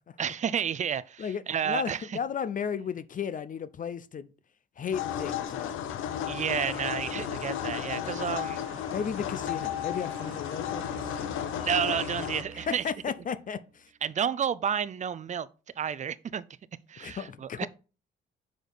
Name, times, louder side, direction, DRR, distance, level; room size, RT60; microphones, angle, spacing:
voice 1, 0.2-2.2 6.2-8.6 11.6-12.8 14.0-15.5 15.8-16.4 16.9-17.7, right 8 dB, 40° right, 0.5 m, -31 dB
voice 2, 1.2-4.3 4.8-5.8 8.9-11.5 12.5-13.9 17.0-17.7, left 7 dB, 40° left, 0.5 m, -34 dB
sound 1, 4.9-12.4, left 10 dB, 85° left, 0.7 m, -34 dB
sound 2, 5.3-13.6, right 3 dB, 80° right, 1.8 m, -48 dB
6.3 x 5.1 x 3.9 m
cardioid pair, 90°, 20 cm